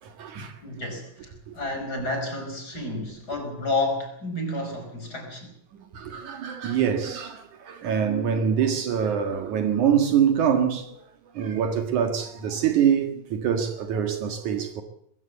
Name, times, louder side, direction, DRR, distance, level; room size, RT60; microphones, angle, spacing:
voice 1, 0.0-0.6 1.5-1.6 5.9-11.0 11.3-14.8, right 8 dB, 65° right, 3.0 m, -25 dB
voice 2, 0.6-5.5, left 2 dB, 25° left, 5.7 m, -30 dB
21.0 x 16.0 x 8.2 m
omnidirectional pair, 3.8 m